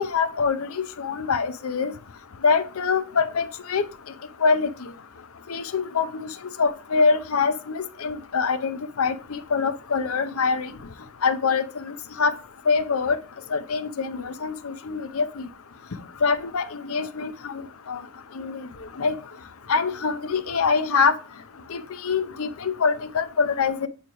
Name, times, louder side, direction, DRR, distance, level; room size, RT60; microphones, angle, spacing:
voice 1, 0.0-1.9 2.4-3.8 4.4-4.7 5.5-6.1 6.6-10.7 11.2-12.3 12.7-13.2 13.5-15.5 16.2-17.6 17.9-18.0 18.4-18.6 19.0-19.1 19.7-21.1 21.7-23.9, left 5 dB, 75° left, 12 dB, 0.6 m, -24 dB
8.7 x 3.0 x 4.8 m, 0.34 s
head